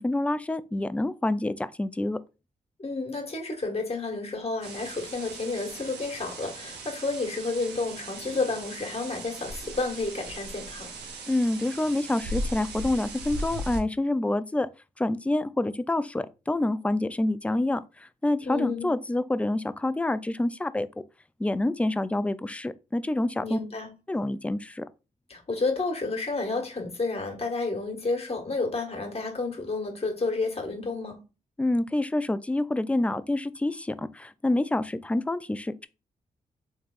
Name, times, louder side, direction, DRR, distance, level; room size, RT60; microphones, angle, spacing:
voice 1, 0.0-2.2 11.3-14.7 15.0-20.9 21.4-23.6 24.1-24.9 31.6-35.9, left 2 dB, 5° left, 0.3 m, -27 dB
voice 2, 2.8-10.9 18.4-18.9 23.4-23.9 25.3-31.2, left 3 dB, 35° left, 1.5 m, -31 dB
sound 1, 4.6-13.8, right 1 dB, 80° right, 0.8 m, -38 dB
3.3 x 3.2 x 2.4 m
supercardioid pair, 40°, 17 cm